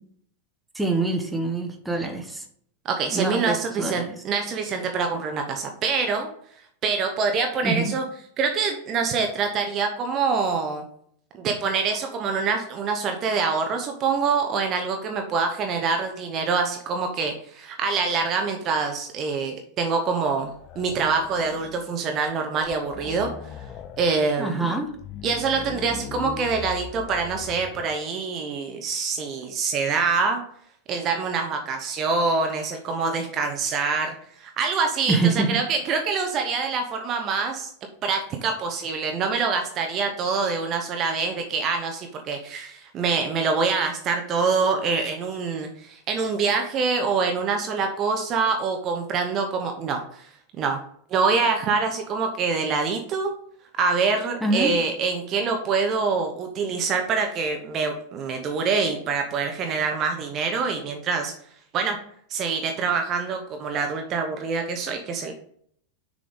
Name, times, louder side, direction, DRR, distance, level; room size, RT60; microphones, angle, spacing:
voice 1, 0.7-2.4 3.1-4.1 7.6-8.0 24.4-24.9 35.1-35.6 54.4-54.7, right 3 dB, 5° right, 3 dB, 1.1 m, -25 dB
voice 2, 2.8-6.3 6.8-8.0 8.4-10.8 11.3-23.3 24.0-24.8 25.2-30.4 30.9-37.7 38.0-50.3 50.6-50.8 51.1-53.3 53.8-61.3 61.7-62.0 62.3-65.3, right 4 dB, 30° right, 4 dB, 0.7 m, -25 dB
sound 1, 20.4-21.9 22.3-22.4 22.6-24.2 24.8-27.9, left 9 dB, 30° left, 0.8 m, -39 dB
6.6 x 3.9 x 5.1 m, 0.64 s
figure-of-eight pair, 90°, 0 cm